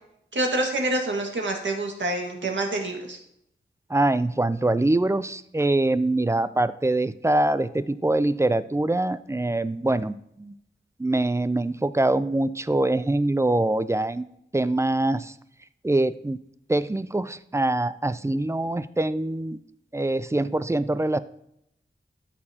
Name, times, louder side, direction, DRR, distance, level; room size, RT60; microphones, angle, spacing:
voice 1, 0.3-3.2, right 2 dB, 70° right, 2 dB, 1.7 m, -27 dB
voice 2, 3.9-10.5 11.0-14.2 14.5-15.3 15.8-16.4 16.7-19.6 19.9-21.2, right 2 dB, 15° right, 14 dB, 0.3 m, -24 dB
13.0 x 6.6 x 2.8 m, 0.76 s
wide cardioid pair, 105°, 20 cm